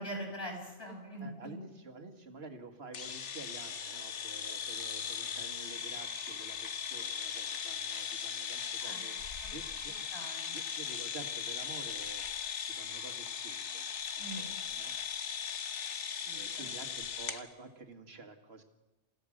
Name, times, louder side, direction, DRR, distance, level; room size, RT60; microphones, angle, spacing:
voice 1, 0.0-1.5 8.8-9.0 9.4-9.5 10.1-10.6 14.2-14.4 16.2-16.5, right 1 dB, 20° left, 0 dB, 6.9 m, -42 dB
voice 2, 1.2-9.1 9.5-9.9 10.5-12.2 12.7-13.8 14.2-14.9 16.3-18.6, right 3 dB, 60° right, 5 dB, 2.2 m, -50 dB
sound 1, 2.9-17.4, left 7 dB, 85° left, 1.4 m, -38 dB
28.5 x 16.0 x 6.5 m, 1.0 s
omnidirectional pair, 1.2 m